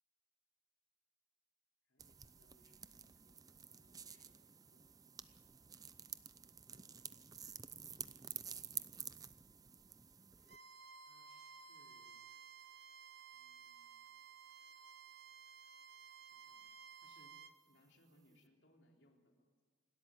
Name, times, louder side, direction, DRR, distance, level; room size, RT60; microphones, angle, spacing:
voice 1, 1.9-5.5 6.7-7.5 11.1-12.2 13.3-14.1 16.3-16.7 17.0-17.3 17.7-19.5, equal, 65° left, 1 dB, 3.7 m, -72 dB
sound 1, 2.0-10.6, right 7 dB, 20° right, 0.6 m, -51 dB
Bowed string instrument, 10.5-17.5, right 6 dB, 60° right, 1.3 m, -56 dB
28.0 x 13.0 x 9.0 m, 1.5 s
head